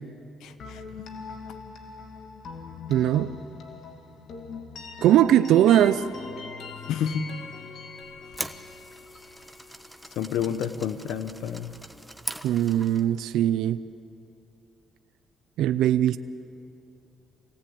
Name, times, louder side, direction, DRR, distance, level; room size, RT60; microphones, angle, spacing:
voice 1, 0.4-0.8 6.9-7.3 10.2-11.7, left 8 dB, 90° left, 11 dB, 1.0 m, -29 dB
sound 1, 0.6-10.4, left 5 dB, 65° left, 2.5 m, -42 dB
voice 2, 2.9-3.3 5.0-6.0 12.4-13.8 15.6-16.2, right 11 dB, 85° right, 12 dB, 0.5 m, -20 dB
sound 2, 8.0-13.1, equal, ahead, 1.2 m, -41 dB
25.5 x 18.0 x 8.6 m, 2.8 s
cardioid pair, 90°, 0 cm